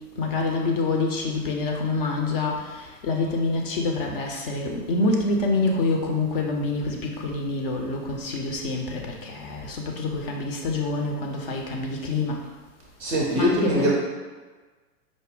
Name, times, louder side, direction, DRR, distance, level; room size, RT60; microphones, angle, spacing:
voice 1, 0.2-2.6 3.0-12.4 13.3-13.9, left 3 dB, 35° left, 1 dB, 0.5 m, -26 dB
voice 2, 13.0-13.9, equal, 20° right, -3 dB, 0.5 m, -22 dB
4.9 x 2.1 x 3.6 m, 1.4 s
figure-of-eight pair, 100°, 47 cm